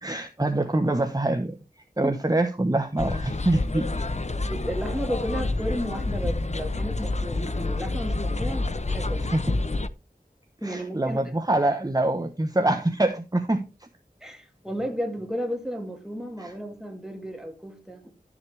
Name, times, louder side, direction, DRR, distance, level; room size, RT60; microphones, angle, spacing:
voice 1, 0.0-1.5 2.0-4.1 8.9-9.5 10.6-13.9 16.4-16.5, right 2 dB, 25° right, 1.0 m, -25 dB
sound 1, 3.0-9.9, left 2 dB, 45° left, 0.7 m, -28 dB
voice 2, 4.5-9.3 10.6-11.3 14.2-18.1, equal, 5° right, 2.6 m, -33 dB
12.5 x 7.3 x 3.3 m
wide cardioid pair, 45°, 16 cm